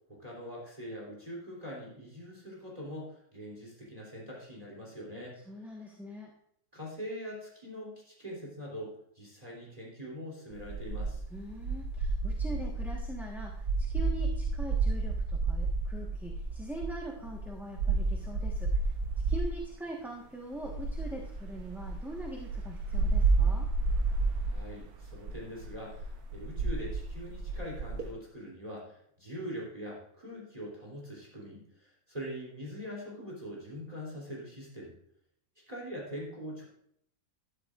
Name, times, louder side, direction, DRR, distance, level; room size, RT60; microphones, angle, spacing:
voice 1, 0.1-5.4 6.7-11.2 24.4-34.9 35.7-36.7, equal, 25° right, -4 dB, 3.1 m, -43 dB
voice 2, 5.5-6.3 11.3-18.9 19.3-23.7, right 1 dB, ahead, -2 dB, 1.1 m, -42 dB
sound 1, 10.5-19.7 20.5-28.1, right 3 dB, 85° right, 1.5 m, -31 dB
12.5 x 12.5 x 2.5 m, 0.70 s
omnidirectional pair, 1.5 m